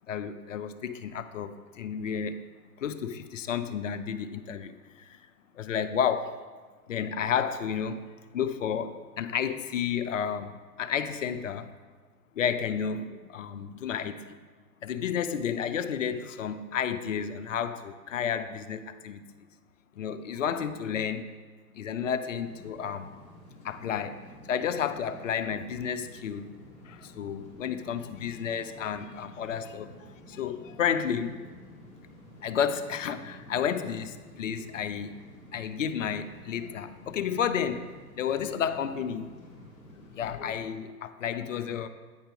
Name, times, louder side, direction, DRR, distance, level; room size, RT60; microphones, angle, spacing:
voice 1, 0.1-2.4 2.8-5.2 5.5-6.3 6.9-8.0 8.3-11.7 12.4-14.2 14.8-19.2 20.0-21.3 21.7-23.1 23.6-26.5 26.9-31.4 32.4-35.1 35.5-37.9 38.2-39.3 40.2-41.9, left 8 dB, 55° left, 10 dB, 0.6 m, -31 dB
sound 1, 22.4-40.6, left 1 dB, 15° left, 2.4 m, -50 dB
9.1 x 4.4 x 5.0 m, 1.4 s
figure-of-eight pair, 110°, 45 cm